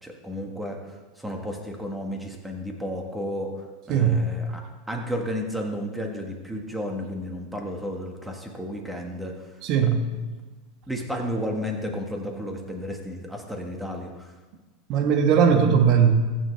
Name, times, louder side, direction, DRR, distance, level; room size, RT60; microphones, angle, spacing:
voice 1, 0.0-4.6 4.9-9.5 10.9-14.3, equal, 5° right, 1 dB, 1.8 m, -32 dB
voice 2, 3.9-4.2 9.6-10.0 14.9-16.2, right 7 dB, 50° right, 5 dB, 1.5 m, -19 dB
14.5 x 7.3 x 3.4 m, 1.2 s
hypercardioid pair, 105°, 0 cm